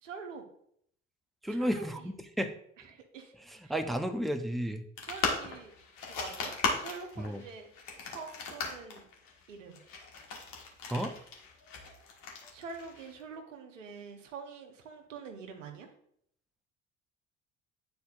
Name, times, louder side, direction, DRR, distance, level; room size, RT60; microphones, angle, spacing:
voice 1, 0.0-0.5 1.5-1.9 2.9-3.3 3.6-3.7 5.0-5.7 6.0-7.7 8.0-9.0 9.5-9.8 12.5-15.9, right 5 dB, 90° right, 5 dB, 0.8 m, -45 dB
voice 2, 1.4-2.5 3.5-4.8 7.2-7.4 10.9-11.1, equal, ahead, 7 dB, 0.6 m, -32 dB
sound 1, 5.0-13.2, left 4 dB, 60° left, 1.5 m, -37 dB
9.3 x 4.3 x 2.4 m, 0.68 s
hypercardioid pair, 55°, 37 cm